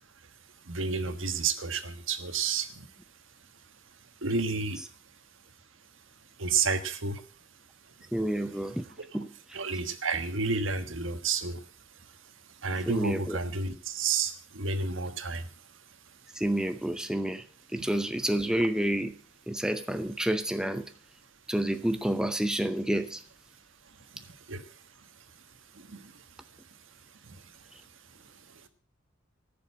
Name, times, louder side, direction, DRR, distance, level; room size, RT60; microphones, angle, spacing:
voice 1, 0.6-2.8 4.2-4.8 6.4-7.2 9.5-11.6 12.6-15.5 24.1-24.7 25.7-26.2 27.2-27.5 28.5-28.7, right 4 dB, 70° right, 9 dB, 1.4 m, -31 dB
voice 2, 8.1-8.9 9.1-9.3 12.9-13.4 16.3-17.4 17.7-19.1 19.5-20.9 21.5-23.2, right 1 dB, 5° right, 9 dB, 0.6 m, -29 dB
14.5 x 6.9 x 7.4 m, 0.41 s
head